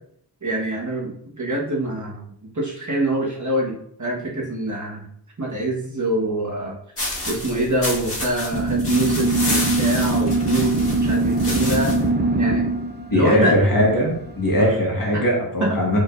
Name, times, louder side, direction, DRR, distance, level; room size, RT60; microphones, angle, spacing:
voice 1, 0.4-5.1 5.4-6.8 7.2-11.9 12.3-12.6 13.1-13.6 14.6-14.7 15.1-15.2 15.6-15.8, right 1 dB, 45° right, -3 dB, 1.4 m, -25 dB
sound 1, 7.0-12.1, left 1 dB, 30° left, 1.7 m, -29 dB
sound 2, 8.5-14.8, right 2 dB, 25° right, 0.5 m, -22 dB
voice 2, 13.1-16.0, equal, 55° left, -3 dB, 1.7 m, -20 dB
5.0 x 3.8 x 2.5 m, 0.67 s
wide cardioid pair, 55°, 41 cm